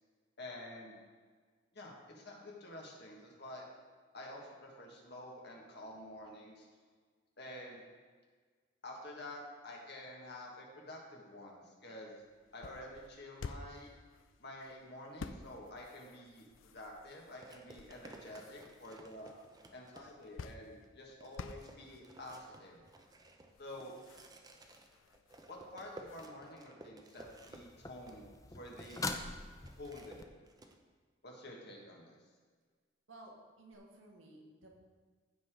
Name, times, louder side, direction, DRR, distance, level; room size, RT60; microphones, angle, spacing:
voice 1, 0.4-1.0 1.7-3.7 4.1-6.7 7.4-7.8 8.8-12.2 12.5-13.9 14.4-19.3 19.7-22.8 23.6-23.9 25.5-28.3 28.5-29.1 29.8-30.3 31.2-32.2, left 1 dB, 55° left, -2 dB, 1.8 m, -49 dB
sound 1, 12.2-26.3, left 4 dB, 85° left, 0.5 m, -53 dB
sound 2, 16.4-16.6 17.4-20.4 20.8-20.9 21.2-29.3 29.6-30.8, right 1 dB, 20° right, 0.7 m, -56 dB
sound 3, 27.2-30.2 33.7-33.8, left 3 dB, 15° left, 0.5 m, -44 dB
voice 2, 33.1-34.7, right 1 dB, 85° right, 0 dB, 1.6 m, -55 dB
15.0 x 5.0 x 3.8 m, 1.5 s
head